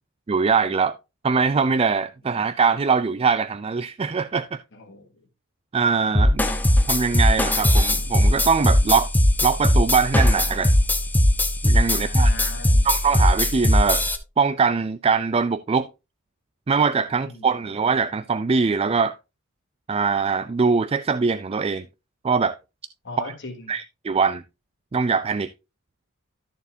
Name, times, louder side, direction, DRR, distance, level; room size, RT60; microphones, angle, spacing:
voice 1, 0.3-1.0 1.2-4.6 5.7-6.4 6.9-9.1 9.4-10.7 11.6-12.3 12.8-14.0 14.4-15.9 16.7-19.1 19.9-21.9 22.2-22.6 23.2-23.3 23.7-24.4 24.9-25.5, right 5 dB, 25° right, 0.4 m, -22 dB
voice 2, 4.7-5.1 6.4-6.5 11.9-12.9 17.2-17.5 23.0-23.7, left 3 dB, 55° left, 3.2 m, -38 dB
sound 1, 6.1-14.2, left 1 dB, 10° left, 1.0 m, -19 dB
13.0 x 6.8 x 2.7 m
head